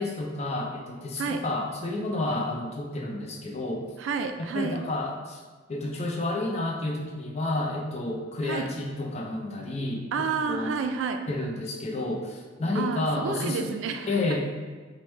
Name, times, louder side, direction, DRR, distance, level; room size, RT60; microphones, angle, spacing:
voice 1, 0.0-3.9 4.5-5.4 5.7-10.7 11.3-13.8 14.1-14.5, left 2 dB, 35° left, 0 dB, 0.5 m, -30 dB
voice 2, 4.0-4.8 8.4-8.7 10.1-11.2 12.7-14.2, right 5 dB, 75° right, 7 dB, 0.3 m, -30 dB
4.6 x 2.1 x 3.2 m, 1.4 s
head